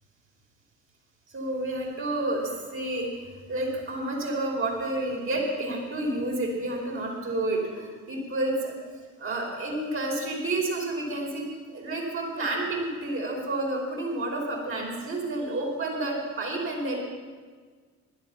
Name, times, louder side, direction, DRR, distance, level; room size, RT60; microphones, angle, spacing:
voice 1, 1.3-8.8 9.2-11.4 11.7-17.0, right 2 dB, 35° right, 0 dB, 4.8 m, -30 dB
16.0 x 12.0 x 5.9 m, 1.5 s
figure-of-eight pair, 60°, 39 cm